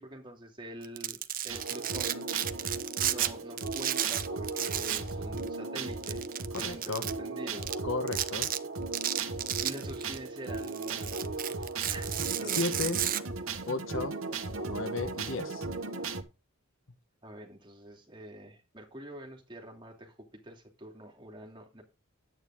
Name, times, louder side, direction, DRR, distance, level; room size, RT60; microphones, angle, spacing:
voice 1, 0.0-2.3 3.0-6.2 6.5-7.7 9.6-12.7 17.2-21.8, right 1 dB, 20° right, 2.9 m, -46 dB
Domestic sounds home sounds, 0.8-3.3 3.6-5.1 5.4-5.5 6.0-7.1 7.6-7.7 8.1-8.6 8.9-10.2 10.5-13.2, right 12 dB, 40° right, 0.7 m, -32 dB
sound 1, 1.5-16.2, right 3 dB, 70° right, 1.5 m, -37 dB
voice 2, 6.5-7.0 7.8-8.5 12.6-13.0 13.7-14.1 14.7-15.6, left 3 dB, 65° left, 1.3 m, -33 dB
10.5 x 9.1 x 3.7 m
head